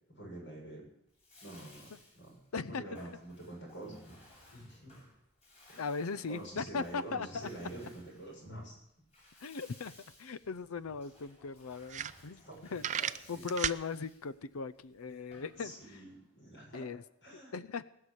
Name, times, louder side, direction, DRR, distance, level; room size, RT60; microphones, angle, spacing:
voice 1, 0.1-0.9 1.4-2.4 2.7-4.2 4.5-5.1 5.7-5.8 6.3-8.7 12.4-13.5 15.6-16.9 17.2-17.5, right 1 dB, 60° left, -1 dB, 6.9 m, -47 dB
Bathtub (filling or washing), 1.1-16.2, left 2 dB, 30° left, 6.2 m, -60 dB
voice 2, 2.5-2.8 5.8-7.5 9.4-9.9 10.2-12.4 12.7-12.9 13.3-15.7 16.7-17.0 17.3-17.9, left 4 dB, 90° left, 16 dB, 0.6 m, -38 dB
sound 1, 10.4-10.5 10.8-10.9 11.4-11.5 11.8-12.5 12.8-13.8, right 9 dB, 35° right, 0.4 m, -34 dB
20.0 x 6.7 x 8.8 m, 0.81 s
head